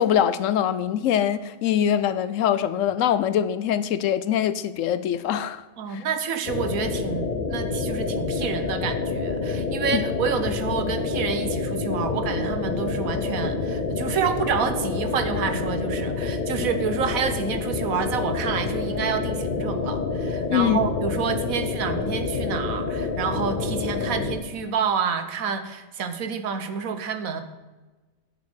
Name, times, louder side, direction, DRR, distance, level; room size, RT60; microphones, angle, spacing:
voice 1, 0.0-5.6 5.9-6.0 9.9-10.0 20.5-20.8, left 9 dB, 70° left, 0.9 m, -23 dB
voice 2, 5.8-27.4, right 6 dB, 85° right, 1.3 m, -28 dB
sound 1, 6.5-24.4, left 4 dB, 45° left, 0.9 m, -28 dB
9.0 x 7.1 x 6.7 m
omnidirectional pair, 1.4 m